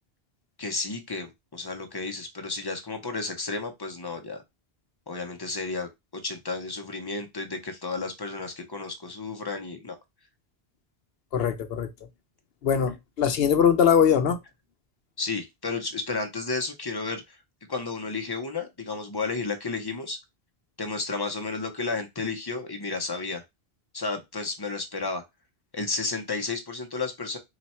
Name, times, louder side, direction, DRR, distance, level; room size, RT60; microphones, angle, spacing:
voice 1, 0.6-4.4 5.1-5.9 6.2-10.0 15.2-17.4 17.7-20.2 20.8-23.4 23.9-25.2 25.7-27.4, left 3 dB, 25° left, 0.7 m, -32 dB
voice 2, 11.3-11.9 12.6-14.4, left 7 dB, 70° left, 0.8 m, -21 dB
3.9 x 2.3 x 4.2 m
omnidirectional pair, 1.1 m